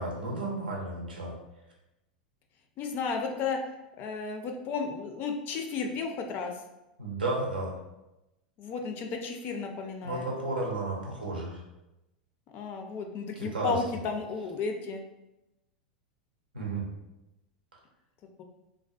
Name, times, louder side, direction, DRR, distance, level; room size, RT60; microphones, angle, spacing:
voice 1, 0.0-1.4 7.0-7.7 10.0-11.6 13.4-13.8 16.5-16.9, right 2 dB, 90° right, -2 dB, 0.6 m, -33 dB
voice 2, 2.8-3.6 4.0-6.5 8.6-10.3 12.5-15.0, left 5 dB, 40° left, 3 dB, 0.3 m, -33 dB
2.4 x 2.2 x 2.3 m, 0.95 s
hypercardioid pair, 95°, 5 cm